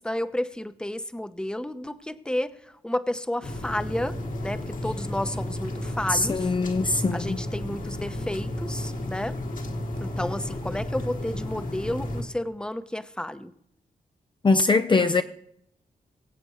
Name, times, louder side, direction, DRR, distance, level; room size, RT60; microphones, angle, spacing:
voice 1, 0.0-6.5 7.1-9.4 10.0-13.5, left 1 dB, 5° left, 0.8 m, -31 dB
sound 1, 3.4-12.2, left 1 dB, 60° left, 1.7 m, -33 dB
voice 2, 6.1-7.4 14.4-15.2, left 3 dB, 30° left, 0.5 m, -22 dB
23.0 x 7.8 x 3.1 m
cardioid pair, 75°, 16 cm